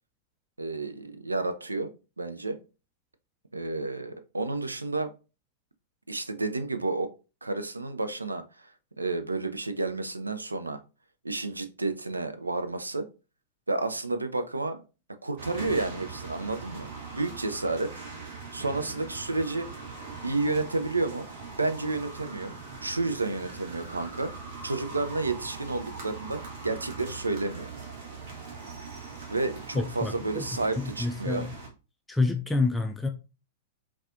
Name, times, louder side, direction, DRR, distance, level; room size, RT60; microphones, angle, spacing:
voice 1, 0.6-1.9 2.2-2.6 3.5-5.1 6.1-7.1 7.4-8.7 9.0-10.8 11.2-13.1 13.7-14.8 15.2-16.9 17.1-17.9 18.5-19.7 20.2-21.3 21.6-22.5 22.8-24.3 24.6-27.7 29.3-31.5, right 3 dB, 85° right, 0.4 m, -31 dB
sound 1, 15.4-31.7, right 4 dB, 55° right, 1.1 m, -41 dB
voice 2, 29.7-30.4 30.8-31.5 32.1-33.1, left 3 dB, 5° left, 0.3 m, -28 dB
4.0 x 2.2 x 2.5 m
figure-of-eight pair, 100°, 0 cm